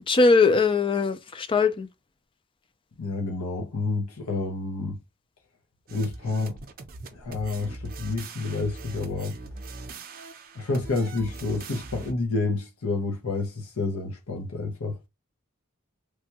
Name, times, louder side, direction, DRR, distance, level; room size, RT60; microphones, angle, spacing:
voice 1, 0.1-1.9, left 4 dB, 25° left, 0.3 m, -20 dB
voice 2, 3.0-5.0 5.9-6.6 7.1-9.4 10.6-15.0, left 3 dB, 75° left, 0.7 m, -29 dB
sound 1, 5.9-12.1, right 3 dB, 40° right, 0.5 m, -41 dB
3.3 x 2.2 x 2.8 m
head